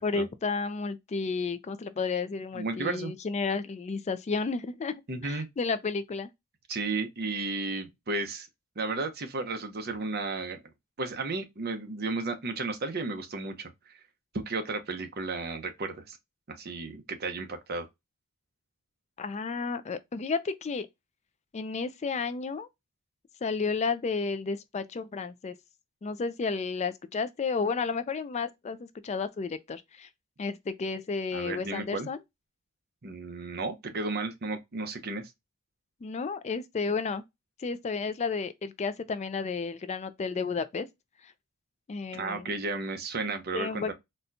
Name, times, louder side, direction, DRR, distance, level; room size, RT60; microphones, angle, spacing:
voice 1, 0.0-4.9 5.2-6.3 19.2-20.9 21.5-22.7 23.4-25.5 26.0-30.1 30.4-32.2 36.0-37.2 37.6-40.9 41.2-41.3 41.9-42.5 43.5-43.9, left 4 dB, 30° left, 0.3 m, -32 dB
voice 2, 2.5-3.1 5.1-5.5 6.7-8.5 8.8-10.6 11.0-14.0 14.3-16.2 16.5-17.9 31.3-32.1 33.0-35.3 42.1-43.9, right 3 dB, 45° right, 0.7 m, -33 dB
4.2 x 2.2 x 2.6 m
head